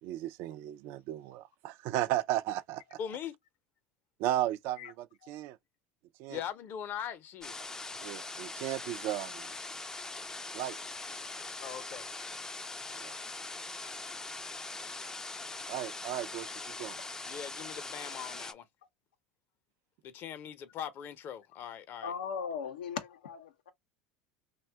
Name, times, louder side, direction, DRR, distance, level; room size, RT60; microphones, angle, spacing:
voice 1, 0.0-3.0 4.2-5.6 6.2-6.4 8.0-9.6 10.5-10.8 12.9-13.2 15.7-17.0, right 14 dB, 60° right, 0.3 m, -35 dB
voice 2, 3.0-3.3 6.3-7.5 11.6-12.1 17.3-18.7 20.0-22.1, left 9 dB, 50° left, 0.6 m, -41 dB
sound 1, 7.4-18.5, left 3 dB, 15° left, 0.3 m, -42 dB
voice 3, 22.0-23.7, left 6 dB, 90° left, 0.6 m, -38 dB
2.6 x 2.2 x 3.3 m
hypercardioid pair, 95°, 5 cm